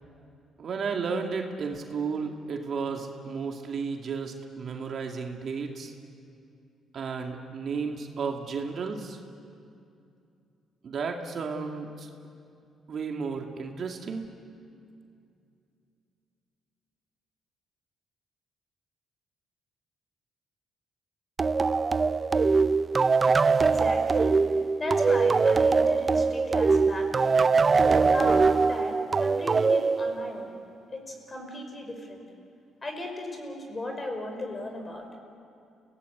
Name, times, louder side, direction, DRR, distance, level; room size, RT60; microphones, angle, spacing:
voice 1, 0.6-5.9 6.9-9.2 10.8-12.1 12.9-14.2, right 5 dB, 55° right, 2 dB, 2.3 m, -33 dB
sound 1, 21.4-30.6, right 4 dB, 35° right, 0.5 m, -22 dB
voice 2, 23.6-24.4 24.8-27.4 27.9-30.5 30.9-32.3 32.8-35.1, left 1 dB, 25° left, 3 dB, 5.3 m, -36 dB
29.5 x 18.0 x 8.0 m, 2.5 s
cardioid pair, 90°, 0 cm